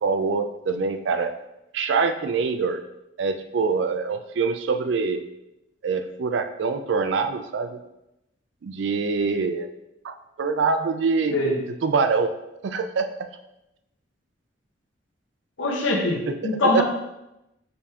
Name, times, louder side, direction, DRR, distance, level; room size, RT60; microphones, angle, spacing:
voice 1, 0.0-1.3 1.7-2.8 3.2-5.2 5.8-7.8 8.6-9.7 10.0-11.4 11.8-12.3 12.6-13.3 16.6-16.8, right 4 dB, 70° right, 8 dB, 0.4 m, -24 dB
voice 2, 15.6-16.8, left 2 dB, 85° left, -1 dB, 1.0 m, -23 dB
5.2 x 3.5 x 2.8 m, 0.89 s
head